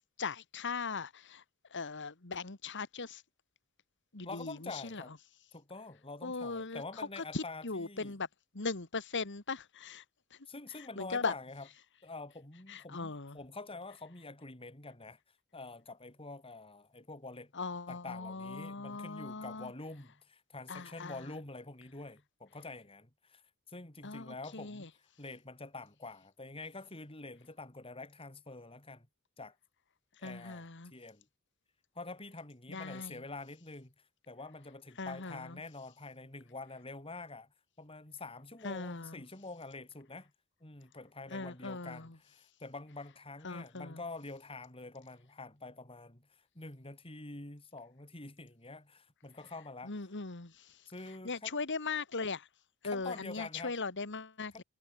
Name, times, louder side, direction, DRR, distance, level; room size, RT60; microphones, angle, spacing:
voice 1, 0.2-1.4 1.7-3.2 4.1-5.0 6.2-6.8 7.2-8.3 8.5-10.0 10.3-10.4 11.0-11.3 12.7-13.4 17.5-19.7 20.7-21.3 24.0-24.9 30.2-30.9 32.7-33.2 35.0-35.6 38.6-39.2 41.3-42.2 43.4-44.0 49.8-50.8 51.2-52.5 52.8-54.6, left 4 dB, 55° left, 1.9 m, -39 dB
voice 2, 4.2-5.1 5.5-8.1 10.5-11.7 12.0-15.2 15.5-17.5 17.9-24.9 25.2-29.1 29.4-29.6 30.2-31.3 31.9-40.3 40.6-49.9 50.9-51.5 52.8-53.7 54.5-54.6, left 3 dB, 25° left, 4.1 m, -47 dB
head